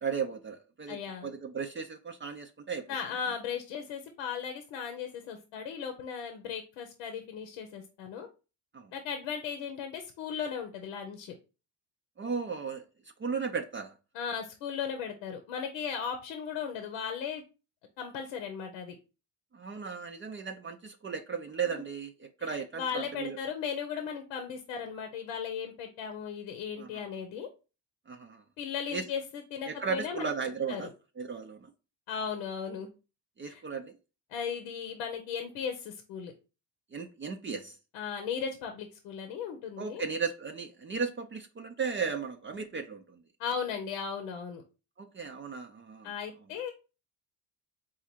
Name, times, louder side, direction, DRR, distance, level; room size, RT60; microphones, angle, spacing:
voice 1, 0.0-2.9 8.7-8.9 12.2-12.9 13.2-13.9 19.5-23.4 26.8-27.1 28.1-28.4 28.9-29.0 29.7-31.7 33.4-34.0 36.9-37.8 39.8-43.2 45.0-46.1, right 5 dB, 25° right, 0.5 m, -36 dB
voice 2, 0.9-1.3 2.9-8.3 8.9-11.3 14.1-17.4 18.0-19.0 21.7-21.8 22.4-27.5 28.6-29.2 29.5-30.3 30.7-30.8 32.1-32.9 33.4-33.6 34.3-36.3 37.9-40.0 43.4-44.6 46.0-46.7, left 7 dB, 85° left, 0.8 m, -36 dB
4.0 x 2.5 x 4.4 m
supercardioid pair, 65°, 44 cm